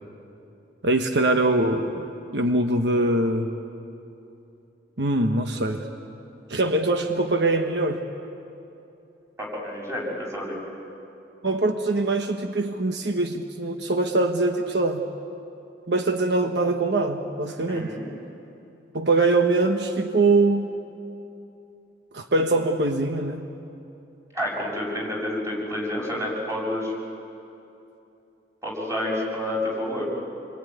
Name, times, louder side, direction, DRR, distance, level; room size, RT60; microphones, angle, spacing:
voice 1, 0.8-2.1 2.3-3.5 5.0-5.8 6.5-8.0 11.4-15.0 15.9-17.9 18.9-20.7 22.1-23.4, right 2 dB, 75° right, 5 dB, 1.2 m, -23 dB
voice 2, 9.4-10.6 17.7-18.0 24.3-26.9 28.6-30.1, left 1 dB, 20° right, -3 dB, 6.7 m, -29 dB
27.5 x 23.0 x 9.4 m, 2.8 s
head